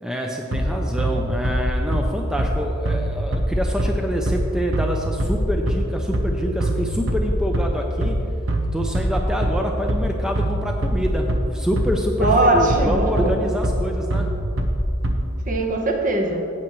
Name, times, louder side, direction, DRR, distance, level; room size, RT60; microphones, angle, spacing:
voice 1, 0.0-8.2 8.7-14.3, equal, 5° right, 1 dB, 0.5 m, -26 dB
Bass drum, 0.5-15.5, right 1 dB, 75° right, 1.0 m, -24 dB
voice 2, 12.2-13.5 15.5-16.5, right 2 dB, 40° right, 3 dB, 1.1 m, -20 dB
14.5 x 8.7 x 3.1 m, 2.9 s
head